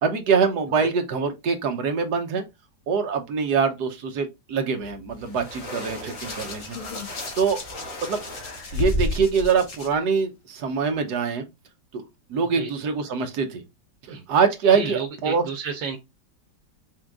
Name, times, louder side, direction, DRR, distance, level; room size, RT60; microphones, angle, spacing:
voice 1, 0.0-2.4 2.9-6.8 7.4-7.6 8.0-8.2 8.7-11.4 11.9-12.0 12.3-13.6 14.3-15.4, right 5 dB, 65° right, 1.4 m, -24 dB
sound 1, 4.8-9.8, left 1 dB, 80° left, 2.3 m, -40 dB
voice 2, 5.6-6.4 12.4-12.7 14.1-14.2 14.7-16.0, right 6 dB, 85° right, 1.6 m, -33 dB
Hands, 6.0-9.9 10.9-11.1, left 2 dB, 45° left, 1.4 m, -31 dB
6.2 x 3.4 x 2.4 m
omnidirectional pair, 2.0 m